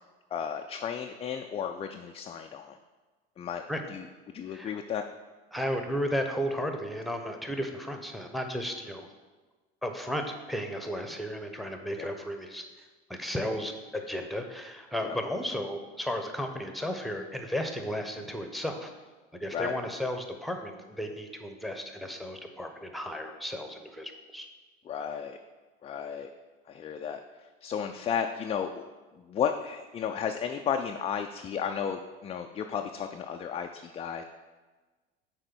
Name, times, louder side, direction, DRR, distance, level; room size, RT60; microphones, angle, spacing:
voice 1, 0.3-2.8 3.4-3.6 3.9-5.0 12.0-12.1 15.0-15.2 19.5-19.7 24.8-25.4 25.8-26.3 26.7-28.8 29.2-34.2, left 7 dB, 20° left, 4 dB, 0.4 m, -33 dB
voice 2, 5.5-9.1 9.8-12.6 13.1-18.9 19.3-24.5, equal, ahead, 5 dB, 0.9 m, -34 dB
6.5 x 4.4 x 6.1 m, 1.3 s
hypercardioid pair, 75°, 30 cm